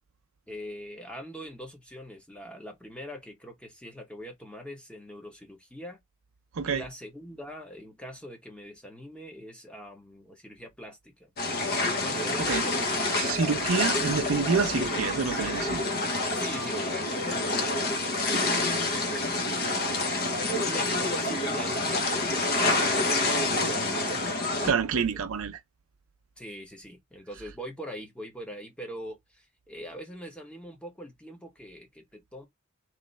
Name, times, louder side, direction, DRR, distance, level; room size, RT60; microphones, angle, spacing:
voice 1, 0.5-6.0 6.6-13.6 16.3-19.3 19.9-24.3 24.9-25.1 26.4-32.5, equal, 5° left, 1.0 m, -43 dB
sound 1, 11.4-24.7, left 2 dB, 45° left, 1.0 m, -28 dB
voice 2, 13.1-15.8 24.6-25.6, right 5 dB, 65° right, 0.5 m, -27 dB
3.1 x 3.1 x 4.0 m
head